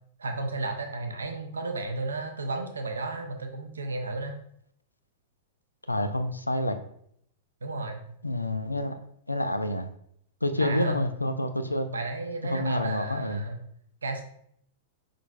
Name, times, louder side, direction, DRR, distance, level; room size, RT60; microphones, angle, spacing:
voice 1, 0.2-4.4 7.6-8.0 10.6-11.1 11.9-13.6 14.0-14.2, right 2 dB, 75° right, 4 dB, 0.6 m, -33 dB
voice 2, 5.9-6.8 8.2-9.0 9.3-9.9 10.4-11.9 12.5-13.4, left 1 dB, 90° left, 8 dB, 0.4 m, -28 dB
4.8 x 3.8 x 2.3 m, 0.69 s
figure-of-eight pair, 100°, 0 cm